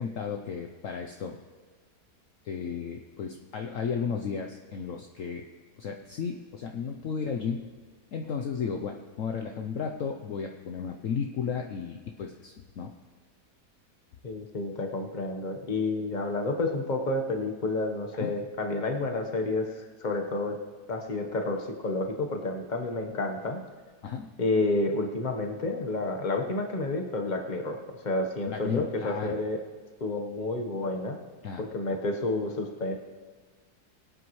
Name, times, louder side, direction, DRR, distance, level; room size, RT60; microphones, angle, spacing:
voice 1, 0.0-1.4 2.4-5.5 5.8-7.7 8.1-12.9 18.2-18.3 24.0-24.3 28.5-29.4 31.4-31.6, left 6 dB, 60° left, 4 dB, 1.0 m, -34 dB
voice 2, 14.2-20.6 20.9-23.6 24.4-27.8 28.0-29.6 30.0-31.2 31.6-33.0, left 2 dB, 30° left, 3 dB, 1.2 m, -30 dB
22.0 x 9.2 x 3.2 m, 1.5 s
omnidirectional pair, 1.7 m